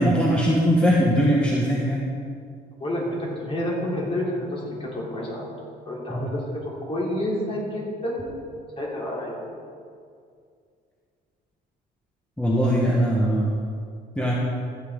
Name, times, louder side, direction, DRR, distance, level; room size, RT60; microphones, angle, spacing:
voice 1, 0.0-2.0 6.1-6.2 12.4-13.5 14.2-14.3, equal, 5° left, -4 dB, 1.5 m, -20 dB
voice 2, 2.8-5.5 5.8-8.4 8.8-9.5, left 1 dB, 35° left, -4 dB, 3.2 m, -29 dB
14.0 x 8.5 x 3.9 m, 2.3 s
cardioid pair, 110°, 17 cm